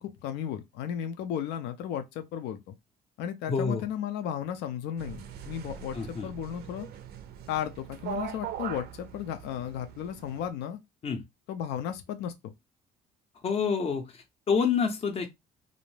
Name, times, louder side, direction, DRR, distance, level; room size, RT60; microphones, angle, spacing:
voice 1, 0.0-2.7 3.2-6.9 7.5-10.8 11.5-12.5, left 9 dB, 90° left, 0.5 m, -34 dB
voice 2, 3.5-3.9 5.9-6.3 11.0-11.2 13.4-15.3, left 6 dB, 35° left, 0.6 m, -28 dB
sound 1, 5.0-10.5, right 8 dB, 70° right, 0.5 m, -41 dB
2.6 x 2.1 x 3.1 m
cardioid pair, 110°, 17 cm